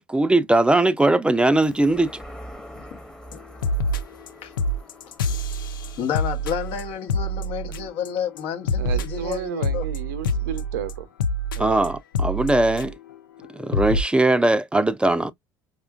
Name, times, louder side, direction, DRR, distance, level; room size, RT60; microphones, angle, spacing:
voice 1, 0.0-2.1 11.6-12.9 13.5-15.3, right 2 dB, 10° right, 0.5 m, -20 dB
sound 1, 1.6-8.4 8.8-8.9, equal, 5° left, 0.9 m, -45 dB
sound 2, 3.3-3.4 3.6-4.3 4.6-8.1 8.4-13.1 13.4-13.5 13.7-14.0, left 1 dB, 85° left, 0.4 m, -26 dB
voice 2, 6.0-9.8 10.3-10.5, left 8 dB, 60° left, 0.9 m, -30 dB
voice 3, 8.8-11.1 11.6-11.8, right 9 dB, 75° right, 0.6 m, -32 dB
4.8 x 2.3 x 2.3 m
hypercardioid pair, 60°, 11 cm